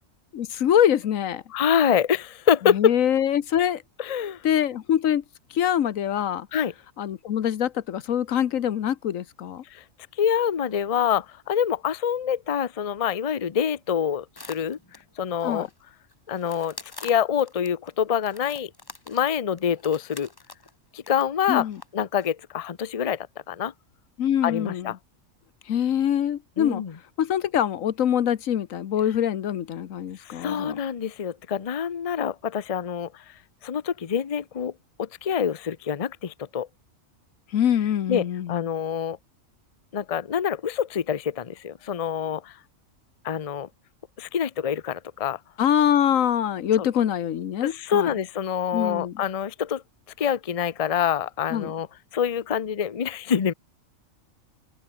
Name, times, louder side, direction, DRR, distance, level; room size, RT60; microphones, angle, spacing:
voice 1, 0.3-1.4 2.7-3.8 4.4-5.2 5.5-6.5 7.0-9.6 15.4-15.7 21.5-21.8 24.2-24.9 25.7-26.8 27.2-30.8 37.5-38.6 45.6-48.1 48.7-49.1 51.5-51.7, left 10 dB, 80° left, 1.3 m, -24 dB
voice 2, 1.5-2.9 4.0-4.4 6.5-6.7 9.7-9.8 10.2-14.8 15.2-15.7 16.3-16.8 17.0-18.7 19.1-20.3 20.9-21.7 21.9-23.7 24.4-25.0 26.6-26.9 30.2-33.2 33.6-34.7 35.0-36.7 38.1-38.2 38.5-39.2 39.9-42.5 43.2-43.7 44.2-45.4 46.8-46.9 47.6-49.8 50.2-51.9 52.1-53.5, left 8 dB, 35° left, 0.7 m, -26 dB
sound 1, 14.4-15.7 16.1-17.9 18.2-20.8 21.1-21.2 21.5-21.9 22.2-22.3, left 3 dB, 20° left, 1.0 m, -45 dB
omnidirectional pair, 1.4 m